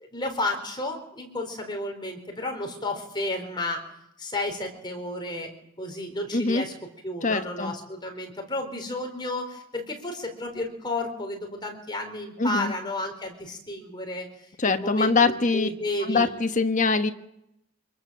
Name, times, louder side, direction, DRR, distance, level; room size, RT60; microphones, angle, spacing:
voice 1, 0.1-3.8 4.2-5.5 5.8-6.7 7.0-14.3 14.7-16.3, left 2 dB, 20° left, 2 dB, 4.1 m, -32 dB
voice 2, 6.3-6.6 7.2-7.7 12.4-12.7 14.6-15.7 16.0-17.1, left 3 dB, 40° left, 8 dB, 1.3 m, -23 dB
26.0 x 22.0 x 7.4 m, 0.80 s
head